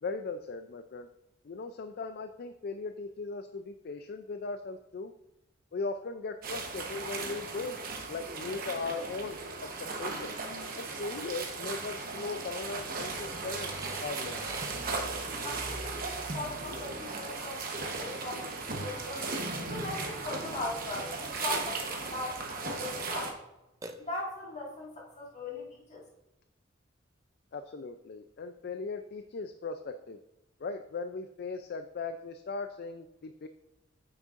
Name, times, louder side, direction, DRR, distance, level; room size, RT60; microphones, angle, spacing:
voice 1, 0.0-1.1 1.4-5.1 5.7-7.8 8.1-10.4 10.8-14.5 27.5-30.2 30.6-33.5, left 4 dB, 55° left, 8 dB, 0.4 m, -38 dB
sound 1, 6.4-23.3, right 3 dB, 50° right, 1.0 m, -37 dB
Burping eructation, 13.4-15.1 23.8-24.6, right 3 dB, 15° right, 0.5 m, -46 dB
voice 2, 15.4-19.3 19.7-23.4 24.0-26.0, left 2 dB, 40° left, -3 dB, 1.9 m, -39 dB
8.8 x 6.4 x 2.5 m, 0.90 s
head